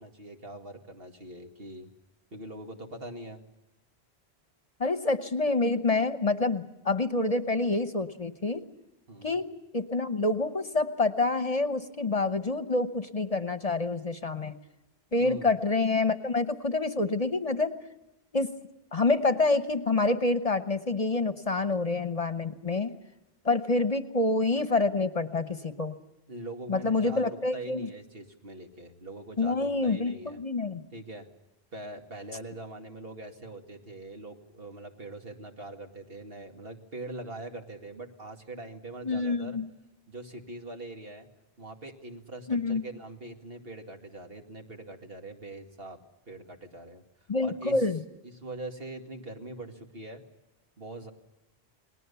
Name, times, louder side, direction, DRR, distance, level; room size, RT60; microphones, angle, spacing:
voice 1, 0.0-1.9 2.3-3.4 9.1-9.4 15.2-15.5 26.3-30.4 30.9-31.3 31.7-39.6 40.1-41.3 41.6-47.0 47.4-47.9 48.2-50.2 50.8-51.1, right 2 dB, 65° right, 4 dB, 2.5 m, -42 dB
voice 2, 4.8-8.6 9.2-9.5 9.7-14.6 15.1-17.8 18.3-18.5 18.9-22.9 23.4-25.9 26.7-27.9 29.4-30.8 39.0-39.7 42.5-42.8 47.3-48.0, left 3 dB, 40° left, 11 dB, 1.0 m, -27 dB
29.5 x 20.0 x 7.0 m, 0.98 s
omnidirectional pair, 1.0 m